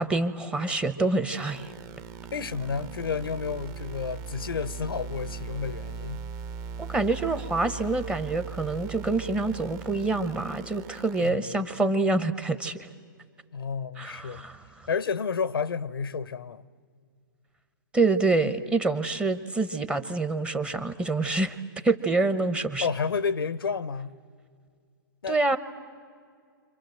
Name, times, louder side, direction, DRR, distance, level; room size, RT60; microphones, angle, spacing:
voice 1, 0.0-1.7 6.8-12.9 14.0-14.9 17.9-21.6 21.8-22.9 25.3-25.6, right 3 dB, 10° right, 0.9 m, -26 dB
sound 1, 1.3-11.3, right 6 dB, 30° right, 1.0 m, -39 dB
voice 2, 2.3-6.2 11.2-11.6 13.5-14.5 14.9-16.7 22.8-24.1 25.2-25.6, left 5 dB, 90° left, 0.9 m, -31 dB
29.5 x 26.5 x 7.7 m
hypercardioid pair, 140°, 12 cm